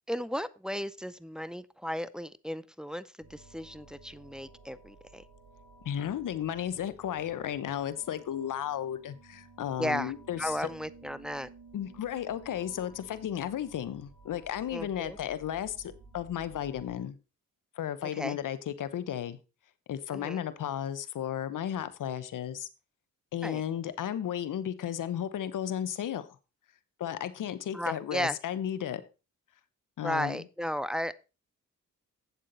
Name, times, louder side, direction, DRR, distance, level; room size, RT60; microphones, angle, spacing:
voice 1, 0.1-5.2 9.8-11.5 14.7-15.2 18.1-18.4 20.1-20.4 23.4-23.6 27.7-28.4 30.0-31.1, equal, ahead, 16 dB, 0.6 m, -35 dB
sound 1, 3.2-17.0, right 3 dB, 60° right, 3.2 m, -54 dB
voice 2, 5.8-10.7 11.7-17.2 17.8-19.4 19.9-22.7 23.3-26.4 27.0-29.0 30.0-30.4, left 10 dB, 70° left, 14 dB, 0.9 m, -34 dB
8.4 x 7.5 x 4.0 m, 0.31 s
cardioid pair, 55°, 33 cm